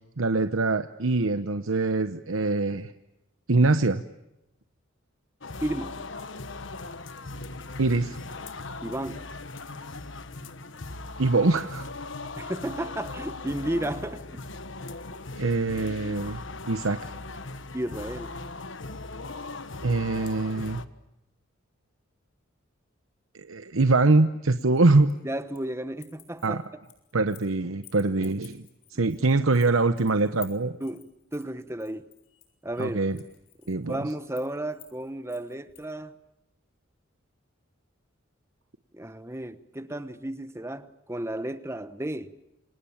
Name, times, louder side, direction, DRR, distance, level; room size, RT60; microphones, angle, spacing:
voice 1, 0.2-2.9 3.5-4.0 7.8-8.2 11.2-11.9 15.4-16.4 16.7-17.0 19.8-20.8 23.3-25.1 26.4-26.6 27.1-28.6 28.9-30.8 32.8-33.2 33.7-34.0, right 3 dB, 85° right, 1.0 m, -23 dB
sound 1, 5.4-20.9, left 3 dB, 65° left, 1.4 m, -39 dB
voice 2, 5.6-6.0 8.8-9.3 12.4-14.2 17.7-18.4 25.2-26.6 30.8-32.1 32.6-33.0 33.6-36.2 38.9-42.3, right 1 dB, 15° right, 1.1 m, -33 dB
sound 2, 24.6-25.7 26.0-27.5 27.8-35.9, left 14 dB, 85° left, 6.9 m, -52 dB
28.5 x 25.5 x 7.3 m
head